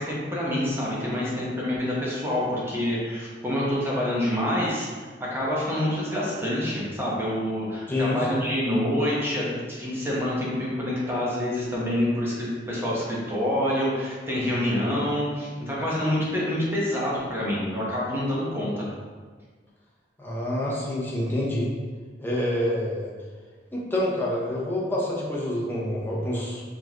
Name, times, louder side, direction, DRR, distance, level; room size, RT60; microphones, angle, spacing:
voice 1, 0.0-18.9, left 1 dB, 15° right, -6 dB, 1.1 m, -27 dB
voice 2, 7.9-8.4 20.2-21.7 22.2-23.1 23.7-26.6, left 1 dB, 10° left, -5 dB, 0.9 m, -27 dB
4.7 x 3.8 x 3.0 m, 1.5 s
head